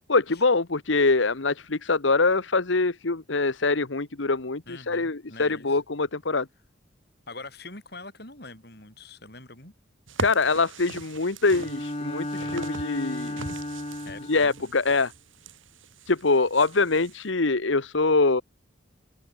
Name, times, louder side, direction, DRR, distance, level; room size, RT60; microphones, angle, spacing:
voice 1, 0.1-6.5 10.2-13.4 14.3-15.1 16.1-18.4, left 3 dB, 75° left, 1.2 m, -24 dB
voice 2, 4.7-5.8 7.3-9.7 14.0-14.6, left 3 dB, 55° left, 8.0 m, -44 dB
sound 1, 10.1-17.2, right 3 dB, 85° right, 4.5 m, -41 dB
Bowed string instrument, 11.5-14.6, left 1 dB, 30° left, 2.3 m, -33 dB
head